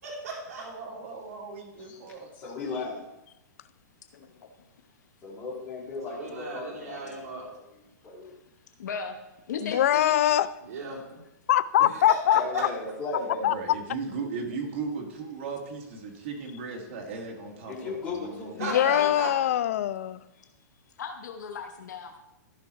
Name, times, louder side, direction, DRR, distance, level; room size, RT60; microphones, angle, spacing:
voice 1, 0.0-0.6 6.1-7.4 10.6-11.2 12.1-12.2 12.5-12.6 17.6-17.7 18.6-19.3, right 4 dB, 55° right, -5 dB, 3.0 m, -36 dB
voice 2, 0.6-2.3 13.5-18.5, right 4 dB, 40° right, 0 dB, 1.8 m, -37 dB
voice 3, 2.3-3.0 5.2-8.3 12.3-13.5 17.7-18.8, left 3 dB, 20° left, -7 dB, 2.7 m, -36 dB
voice 4, 8.8-9.2 9.5-10.2 15.8-16.0 17.3-17.7 18.7-19.2 21.0-22.2, left 6 dB, 75° left, 5 dB, 1.0 m, -37 dB
voice 5, 9.6-10.5 11.5-12.7 13.4-13.5 18.6-20.2, left 12 dB, 50° left, 15 dB, 0.4 m, -23 dB
14.5 x 5.7 x 3.1 m, 0.93 s
hypercardioid pair, 170°, 10 cm